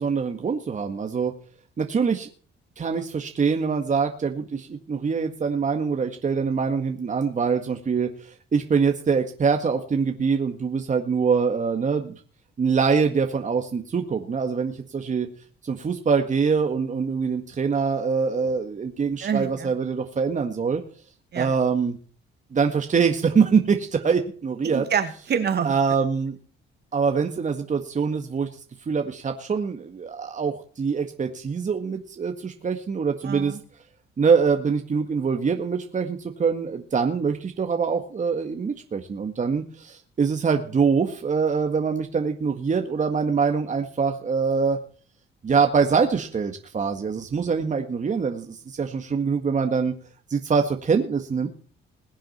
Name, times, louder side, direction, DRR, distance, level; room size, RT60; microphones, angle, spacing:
voice 1, 0.0-1.3 1.8-2.3 2.8-12.1 12.6-15.3 15.6-20.8 21.4-22.0 22.5-24.9 25.6-26.4 26.9-28.5 28.9-33.6 34.2-44.8 45.4-49.9 50.3-51.5, right 5 dB, 40° right, 5 dB, 1.8 m, -24 dB
voice 2, 19.2-19.7 21.3-21.5 24.6-25.8 33.2-33.6, right 7 dB, 55° right, 8 dB, 2.3 m, -26 dB
21.5 x 7.6 x 4.4 m, 0.43 s
cardioid pair, 90°, 20 cm